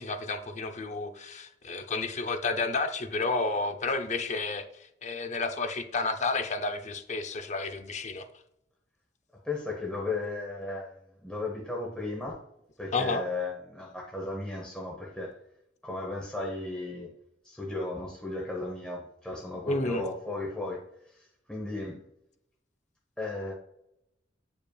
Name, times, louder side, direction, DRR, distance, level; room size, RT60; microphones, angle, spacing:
voice 1, 0.0-4.7 5.0-8.3 12.9-13.2 19.7-20.0, left 3 dB, 40° left, 9 dB, 0.6 m, -31 dB
voice 2, 9.3-12.4 12.8-15.3 15.8-17.1 17.4-20.8 21.5-22.0 23.2-23.5, left 2 dB, 5° left, -2 dB, 0.9 m, -35 dB
8.5 x 5.4 x 2.3 m, 0.80 s
head